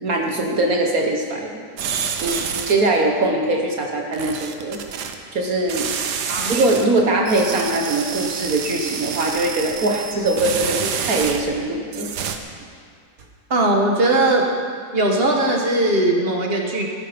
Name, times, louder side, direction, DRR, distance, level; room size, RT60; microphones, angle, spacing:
voice 1, 0.0-1.5 2.2-4.8 5.3-5.9 6.5-12.1, right 2 dB, 60° right, 1 dB, 1.7 m, -21 dB
sound 1, 1.8-2.9 4.1-5.1 5.7-6.8 7.2-11.6 11.9-12.4, right 6 dB, 85° right, 1.5 m, -28 dB
voice 2, 13.5-14.5 14.9-16.9, right 2 dB, 40° right, 1 dB, 1.7 m, -19 dB
15.0 x 11.0 x 5.2 m, 2.1 s
omnidirectional pair, 1.7 m